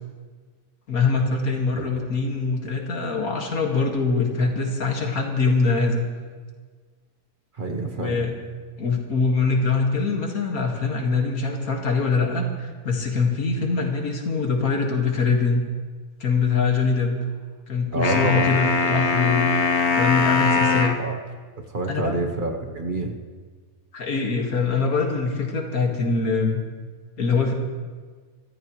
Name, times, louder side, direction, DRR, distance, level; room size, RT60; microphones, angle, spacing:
voice 1, 0.9-6.1 8.0-8.3 8.8-12.5 12.8-15.6 16.2-17.2 17.7-19.5 19.9-20.9 21.9-22.3 23.9-26.6 27.2-27.5, left 4 dB, 85° left, 2 dB, 2.3 m, -23 dB
voice 2, 7.6-8.2 17.9-19.0 20.5-21.2 21.6-23.2, right 2 dB, 40° right, 3 dB, 1.1 m, -28 dB
sound 1, 18.0-21.0, left 4 dB, 55° left, 1.3 m, -21 dB
25.5 x 14.0 x 3.1 m, 1.5 s
omnidirectional pair, 1.5 m